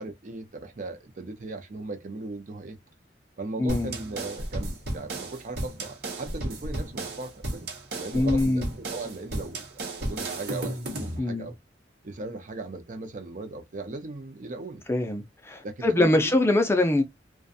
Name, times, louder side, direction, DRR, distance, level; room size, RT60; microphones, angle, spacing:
voice 1, 0.0-2.8 3.4-7.7 7.9-9.6 10.0-11.6 12.0-14.8 15.6-16.3, right 3 dB, 45° right, 0.5 m, -38 dB
voice 2, 3.6-4.0 8.1-8.7 11.2-11.5 14.9-17.0, left 2 dB, 15° left, 0.4 m, -23 dB
sound 1, 3.7-11.2, right 1 dB, 60° right, 0.9 m, -33 dB
2.4 x 2.2 x 2.6 m
head